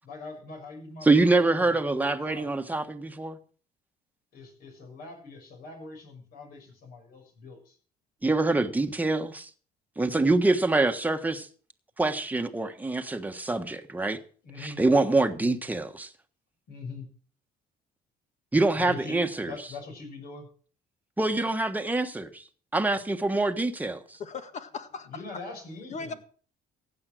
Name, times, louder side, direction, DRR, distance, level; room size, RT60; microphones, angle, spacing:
voice 1, 0.0-2.6 4.3-7.8 14.4-14.8 15.3-15.6 16.7-17.1 18.7-20.5 25.0-26.2, left 3 dB, 65° left, 6.7 m, -43 dB
voice 2, 1.0-3.4 8.2-9.5 10.0-11.5 12.0-14.2 14.6-16.1 18.5-19.5 21.2-22.4 22.7-24.2, right 2 dB, 10° right, 1.4 m, -25 dB
voice 3, 24.2-25.4 25.9-26.1, left 5 dB, 45° left, 1.8 m, -38 dB
15.5 x 9.0 x 6.3 m
cardioid pair, 110°, 17 cm